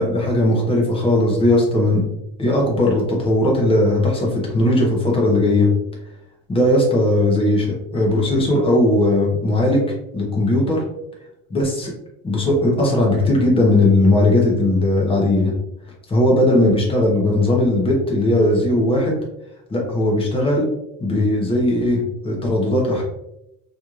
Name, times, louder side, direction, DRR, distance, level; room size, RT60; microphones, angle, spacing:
voice 1, 0.0-2.0 2.4-5.7 6.5-9.8 10.1-10.8 11.5-11.9 12.2-15.5 16.1-19.1 19.7-20.7 21.0-23.0, left 1 dB, 15° left, -2 dB, 0.9 m, -18 dB
4.4 x 3.1 x 2.4 m, 0.84 s
cardioid pair, 155°, 36 cm